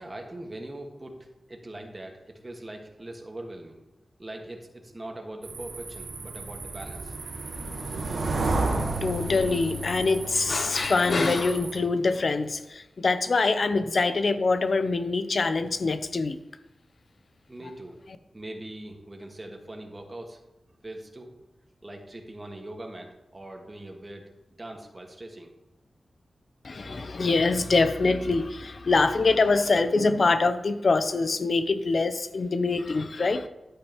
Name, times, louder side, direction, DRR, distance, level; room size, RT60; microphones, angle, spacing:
voice 1, 0.0-3.8 4.2-7.2 17.5-18.0 18.3-20.4 20.8-21.3 21.8-24.3 24.6-25.5 26.8-26.9, right 1 dB, 35° right, 2 dB, 1.7 m, -41 dB
sound 1, 5.4-11.8, right 2 dB, 80° right, 1.3 m, -32 dB
voice 2, 9.0-16.4 26.6-33.5, left 3 dB, 60° left, 11 dB, 0.7 m, -24 dB
10.5 x 8.7 x 3.0 m, 0.96 s
cardioid pair, 45°, 0 cm